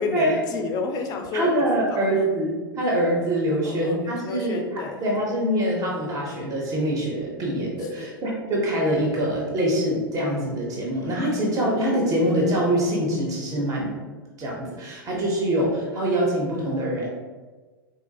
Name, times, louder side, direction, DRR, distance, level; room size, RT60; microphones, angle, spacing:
voice 1, 0.0-1.5 1.9-2.1 3.6-5.0 7.8-8.1 13.5-13.7, left 4 dB, 30° left, 4 dB, 0.4 m, -30 dB
voice 2, 1.3-13.9 14.4-17.1, right 1 dB, 25° right, -3 dB, 0.8 m, -24 dB
3.9 x 2.4 x 2.3 m, 1.3 s
hypercardioid pair, 95°, 13 cm